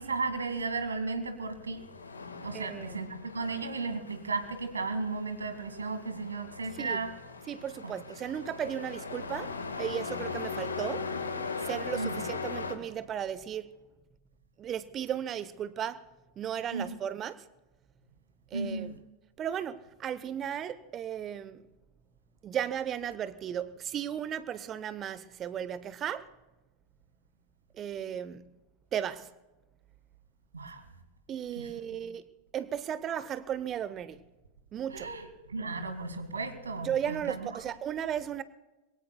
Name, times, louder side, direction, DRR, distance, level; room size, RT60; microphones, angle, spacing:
voice 1, 0.0-1.9 2.4-7.1 7.8-7.9 12.0-12.2 16.7-16.9 18.5-19.0 30.5-30.8 34.9-37.4, right 3 dB, 75° right, 2.0 m, -34 dB
Truck, 1.6-12.7, left 4 dB, 75° left, 1.6 m, -39 dB
voice 2, 2.5-3.0 6.7-7.0 7.5-11.1 11.6-13.7 14.6-16.1 16.4-17.5 18.5-18.9 19.4-21.7 22.4-26.3 27.7-28.5 28.9-29.3 31.3-32.3 32.5-34.2 34.7-35.1 36.8-38.4, right 9 dB, 30° right, 0.9 m, -35 dB
26.0 x 21.5 x 2.3 m
figure-of-eight pair, 90°, 0 cm